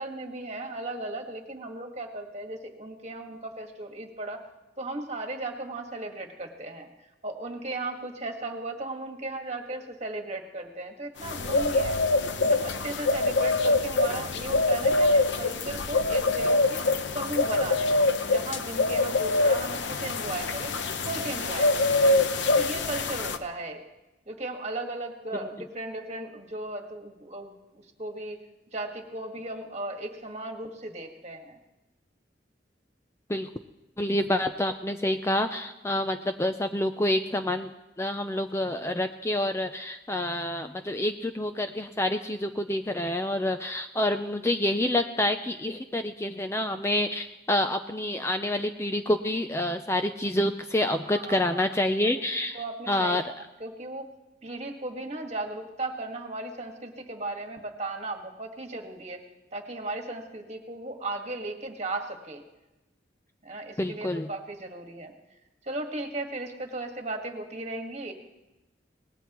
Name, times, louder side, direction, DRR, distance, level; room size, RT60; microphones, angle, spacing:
voice 1, 0.0-4.5 4.8-6.9 7.2-12.0 12.4-16.8 17.1-20.7 21.0-21.9 22.6-23.8 24.3-28.4 28.7-31.6 51.1-51.6 52.0-52.1 52.5-53.2 53.6-54.1 54.4-59.2 59.5-62.4 63.4-65.1 65.6-68.1, right 2 dB, 35° right, 3 dB, 1.7 m, -36 dB
sound 1, 11.2-23.4, left 2 dB, 80° left, 0.8 m, -25 dB
voice 2, 34.0-37.7 38.0-53.2 63.8-64.3, left 1 dB, 15° left, 7 dB, 0.5 m, -28 dB
24.0 x 19.0 x 3.1 m, 1.0 s
head